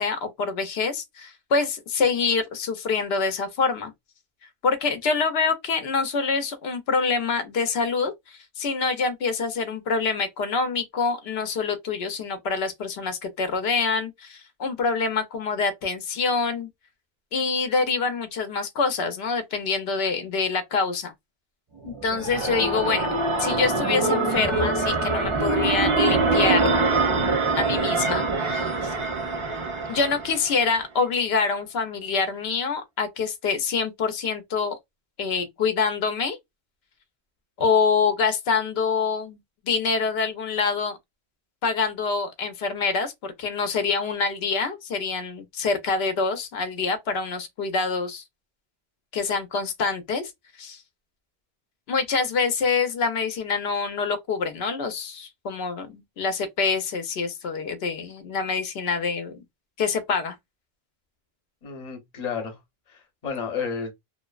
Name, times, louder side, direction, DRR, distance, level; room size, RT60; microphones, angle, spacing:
voice 1, 0.0-3.9 4.6-16.7 17.3-21.1 21.8-26.7 27.6-28.9 29.9-34.8 35.2-36.4 37.6-39.4 39.7-41.0 41.6-48.2 49.1-50.3 50.6-50.8 51.9-59.4 59.8-60.4, left 4 dB, 90° left, 0.8 m, -26 dB
sound 1, 21.8-30.7, right 3 dB, 40° right, 0.5 m, -24 dB
voice 2, 61.6-62.6 62.9-63.9, left 6 dB, 40° left, 0.8 m, -31 dB
2.6 x 2.0 x 2.3 m
omnidirectional pair, 1.0 m